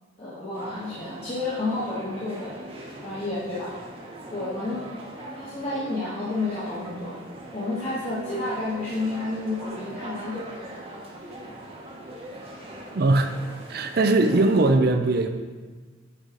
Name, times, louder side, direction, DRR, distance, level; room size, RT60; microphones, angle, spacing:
voice 1, 0.2-2.6 3.0-3.7 4.3-4.9 5.2-7.1 7.5-10.5, left 2 dB, 30° left, -10 dB, 1.5 m, -30 dB
sound 1, 0.5-14.7, right 1 dB, 30° right, 1.1 m, -41 dB
voice 2, 12.9-13.3 13.7-15.3, right 2 dB, 50° right, 7 dB, 0.5 m, -20 dB
9.0 x 4.8 x 3.9 m, 1.4 s
head